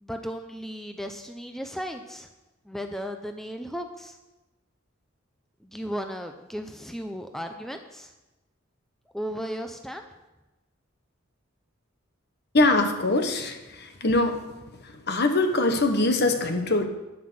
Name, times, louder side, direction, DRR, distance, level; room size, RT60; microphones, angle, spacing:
voice 1, 0.0-2.3 2.7-4.2 5.6-8.1 9.1-10.1, equal, ahead, 5 dB, 0.5 m, -35 dB
voice 2, 12.5-14.4 15.1-16.8, left 2 dB, 55° left, 6 dB, 1.3 m, -23 dB
9.6 x 9.4 x 6.3 m, 1.1 s
head